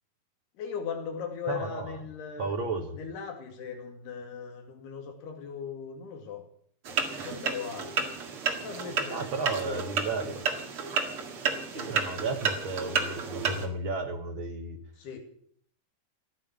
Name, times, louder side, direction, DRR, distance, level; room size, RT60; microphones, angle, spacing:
voice 1, 0.6-2.5 2.9-6.4 7.2-8.1 8.6-10.4 11.7-11.9 15.0-15.2, left 6 dB, 80° left, 5 dB, 4.4 m, -39 dB
voice 2, 1.5-2.0 2.4-3.0 9.1-10.4 11.7-14.8, right 3 dB, 70° right, 4 dB, 1.2 m, -33 dB
sound 1, 6.8-13.7, right 5 dB, 45° right, 2.1 m, -31 dB
16.0 x 11.0 x 8.3 m, 0.63 s
omnidirectional pair, 4.6 m